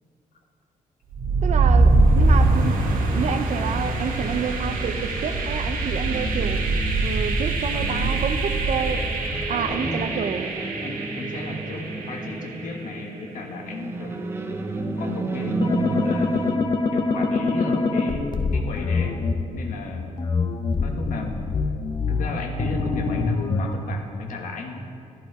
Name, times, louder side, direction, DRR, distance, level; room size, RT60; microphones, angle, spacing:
sound 1, 1.1-13.0, right 2 dB, 75° right, 1.6 m, -23 dB
voice 1, 1.4-6.6 7.0-9.1 9.5-10.5, right 7 dB, 55° right, 9 dB, 0.7 m, -29 dB
sound 2, 3.1-16.6, right 3 dB, 15° right, 0.7 m, -33 dB
voice 2, 7.7-8.2 9.5-10.1 10.8-14.2 14.8-19.2 19.5-20.2 20.8-21.4 22.1-24.8, left 3 dB, 65° left, 3 dB, 1.5 m, -34 dB
sound 3, 15.6-19.3 20.2-23.7, left 4 dB, 30° left, 0.8 m, -24 dB
13.5 x 11.5 x 4.9 m, 2.6 s
cardioid pair, 160°, 14 cm